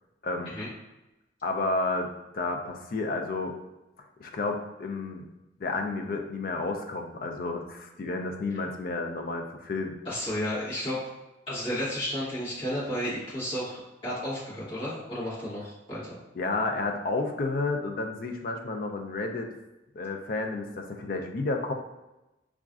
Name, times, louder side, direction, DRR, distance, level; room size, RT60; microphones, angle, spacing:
voice 1, 0.2-0.5 1.4-2.1 2.3-3.5 4.2-5.3 5.6-10.0 16.4-19.5 20.0-21.7, left 3 dB, 50° left, 4 dB, 0.4 m, -31 dB
voice 2, 10.0-11.0 11.5-16.2, equal, 30° left, -10 dB, 1.2 m, -32 dB
4.0 x 2.4 x 2.3 m, 1.0 s
head